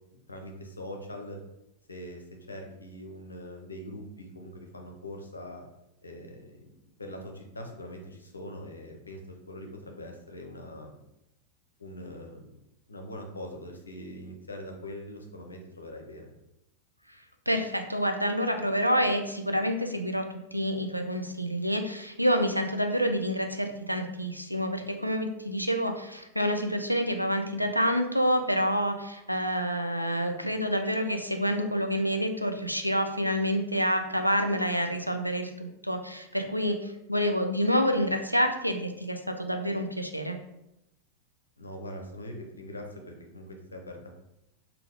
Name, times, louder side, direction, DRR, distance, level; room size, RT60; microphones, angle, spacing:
voice 1, 0.1-1.4 1.9-5.6 6.0-6.7 7.0-11.0 11.8-12.4 12.9-16.3 41.6-44.2, left 1 dB, 75° left, 3 dB, 0.6 m, -42 dB
voice 2, 17.5-20.2 20.5-40.4, equal, 90° right, 5 dB, 0.3 m, -28 dB
3.6 x 2.3 x 3.5 m, 0.85 s
figure-of-eight pair, 90°, 0 cm